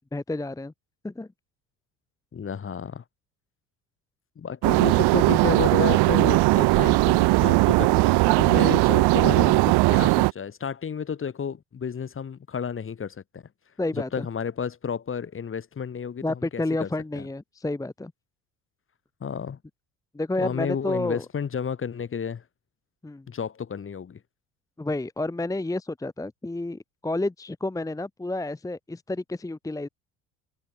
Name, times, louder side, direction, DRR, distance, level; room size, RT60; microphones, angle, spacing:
voice 1, 0.1-0.7 1.0-1.3 13.8-14.3 16.2-18.1 20.1-21.2 23.0-23.3 24.8-29.9, left 2 dB, 5° left, 1.0 m, -30 dB
voice 2, 2.3-3.0 4.3-13.4 13.9-16.9 17.1-17.3 19.2-19.6 20.4-22.4 23.3-24.2, left 7 dB, 25° left, 1.6 m, -31 dB
sound 1, 4.6-10.3, right 24 dB, 60° right, 1.1 m, -19 dB
hypercardioid pair, 65°, 46 cm